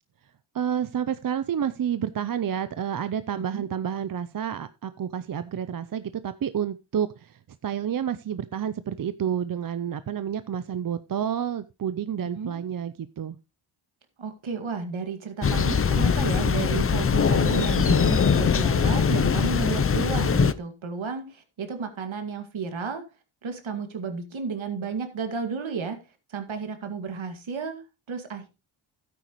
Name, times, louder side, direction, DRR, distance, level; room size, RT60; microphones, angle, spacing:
voice 1, 0.5-13.4, right 9 dB, 45° right, 0.6 m, -29 dB
voice 2, 3.3-3.7 12.3-12.6 14.2-23.0 23.4-26.0 26.3-28.5, right 5 dB, 65° right, 2.2 m, -32 dB
Thunder, 15.4-20.5, left 6 dB, 30° left, 0.5 m, -22 dB
12.0 x 9.3 x 3.1 m
cardioid pair, 70°, 50 cm